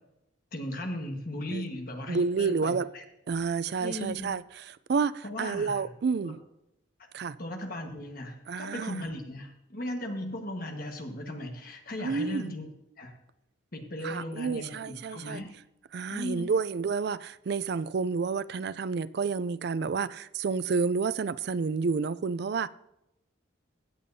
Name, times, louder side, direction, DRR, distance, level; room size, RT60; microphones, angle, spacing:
voice 1, 0.5-3.0 3.8-4.3 5.2-5.8 6.2-6.3 7.4-12.7 13.0-13.1 13.7-15.5 16.1-16.6, left 1 dB, 45° left, 1.5 m, -37 dB
voice 2, 2.1-2.9 3.3-6.4 7.1-7.4 8.5-9.1 12.0-12.5 14.0-15.4 15.9-22.7, right 5 dB, 55° right, 0.4 m, -30 dB
16.0 x 8.8 x 2.7 m
head